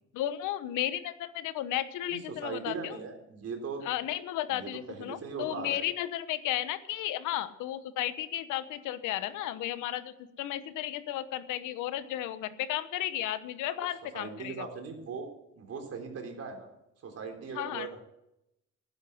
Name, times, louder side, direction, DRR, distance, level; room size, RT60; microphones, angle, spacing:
voice 1, 0.1-3.0 3.8-14.7 17.6-17.9, left 13 dB, 85° left, 12 dB, 1.1 m, -34 dB
voice 2, 2.1-3.8 4.5-5.8 13.7-15.3 15.6-16.7 17.0-18.0, right 5 dB, 55° right, 3 dB, 3.7 m, -39 dB
12.0 x 10.0 x 7.8 m, 0.85 s
cardioid pair, 95°, 30 cm